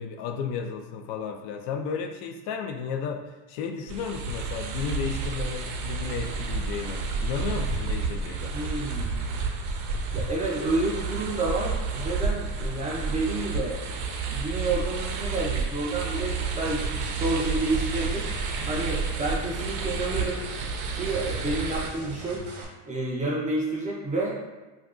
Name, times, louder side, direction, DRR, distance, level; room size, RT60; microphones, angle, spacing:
voice 1, 0.0-8.5 18.6-18.9, left 6 dB, 65° left, 5 dB, 0.5 m, -33 dB
sound 1, 3.9-21.9, right 4 dB, 80° right, 0.6 m, -30 dB
voice 2, 8.5-9.2 10.1-18.3 18.7-20.4 20.9-22.4 22.9-24.4, right 2 dB, 15° right, -4 dB, 0.4 m, -30 dB
sound 2, 16.7-22.7, right 3 dB, 55° right, 0.9 m, -42 dB
2.5 x 2.3 x 3.6 m, 1.2 s
supercardioid pair, 105°, 49 cm